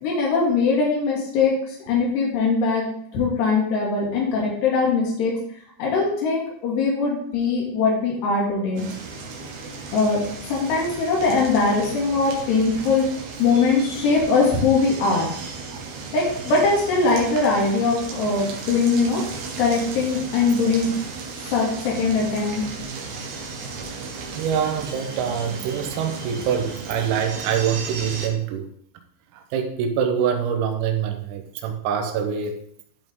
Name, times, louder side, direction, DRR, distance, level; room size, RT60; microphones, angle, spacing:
voice 1, 0.0-2.8 3.1-5.3 5.8-8.8 9.9-13.0 13.4-15.3 16.1-19.2 19.6-20.9 21.5-22.6, left 4 dB, 60° left, 4.3 m, -21 dB
sound 1, 8.8-28.3, right 4 dB, 65° right, 2.9 m, -35 dB
voice 2, 24.3-28.7 29.4-32.5, right 8 dB, 90° right, 3.7 m, -25 dB
12.5 x 5.3 x 3.7 m
omnidirectional pair, 5.8 m